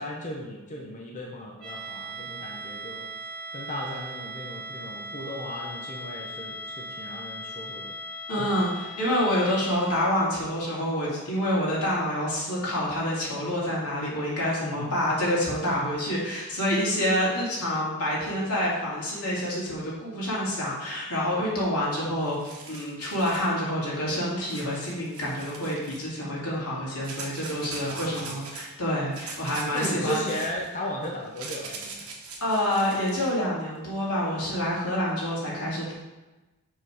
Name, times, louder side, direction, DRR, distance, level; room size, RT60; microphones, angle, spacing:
voice 1, 0.0-3.1 3.5-7.9 14.6-14.9 27.9-28.4 29.7-32.1, left 1 dB, 35° left, -1 dB, 0.7 m, -36 dB
sound 1, 1.6-10.3, right 1 dB, 45° right, 2.1 m, -39 dB
voice 2, 8.3-30.2 32.4-35.9, equal, 85° left, -6 dB, 2.4 m, -27 dB
sound 2, 21.9-22.0 22.2-23.5 24.5-26.1 27.0-28.7 29.1-33.3, right 4 dB, 80° right, 1.2 m, -41 dB
6.8 x 3.8 x 4.8 m, 1.1 s
head